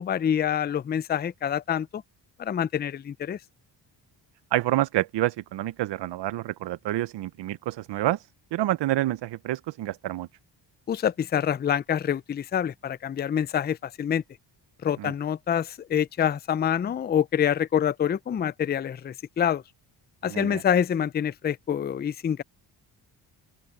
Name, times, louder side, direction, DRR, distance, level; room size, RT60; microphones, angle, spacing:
voice 1, 0.0-2.0 2.4-3.4 10.9-14.2 14.8-19.6 20.2-22.4, left 9 dB, 25° left, 0.4 m, -26 dB
voice 2, 4.5-10.3 15.0-15.1 20.3-20.6, right 15 dB, 70° right, 0.7 m, -28 dB
open air
cardioid pair, 90°, 43 cm